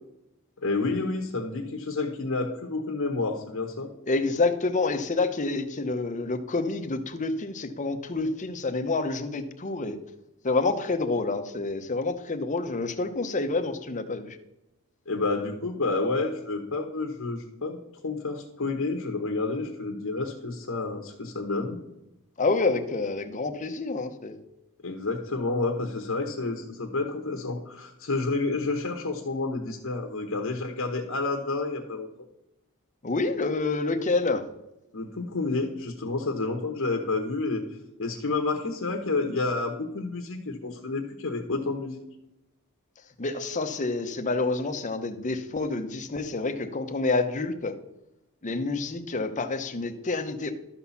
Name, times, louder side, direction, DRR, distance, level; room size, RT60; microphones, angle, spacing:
voice 1, 0.6-3.9 15.1-17.8 18.0-21.8 24.8-32.1 34.9-42.0, left 3 dB, 65° left, 4 dB, 1.0 m, -29 dB
voice 2, 4.1-10.0 10.4-14.4 22.4-24.4 33.0-34.5 43.2-47.8 48.4-50.5, left 3 dB, 35° left, 8 dB, 0.8 m, -28 dB
12.5 x 4.2 x 7.0 m, 0.91 s
head